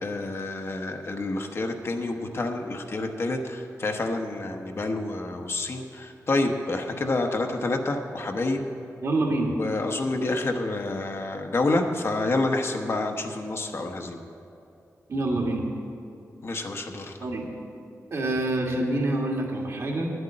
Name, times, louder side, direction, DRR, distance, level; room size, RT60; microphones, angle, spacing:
voice 1, 0.0-8.7 9.2-14.2 16.4-17.1, left 2 dB, 45° left, 4 dB, 0.9 m, -28 dB
voice 2, 9.0-9.5 15.1-15.6 17.2-17.5 18.1-20.1, right 2 dB, 55° right, -1 dB, 2.0 m, -26 dB
10.5 x 8.0 x 8.7 m, 2.7 s
wide cardioid pair, 125°, 6 cm